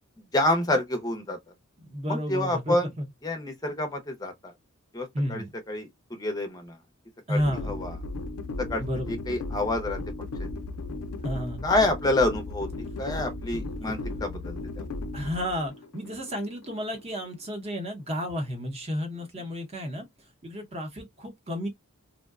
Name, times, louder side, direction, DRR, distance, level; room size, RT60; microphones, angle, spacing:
voice 1, 0.2-1.4 2.1-2.8 3.2-4.5 4.9-6.8 7.3-7.4 7.7-7.9 8.6-10.0 10.4-10.5 11.6-12.7 13.0-14.8, left 2 dB, 15° left, 0.5 m, -28 dB
voice 2, 1.8-3.1 5.1-5.5 7.3-7.7 8.8-9.2 11.2-11.7 13.5-14.0 15.1-20.1 20.4-21.7, equal, 25° right, 0.7 m, -32 dB
sound 1, 7.4-17.4, left 2 dB, 80° left, 0.4 m, -36 dB
2.6 x 2.1 x 2.3 m
head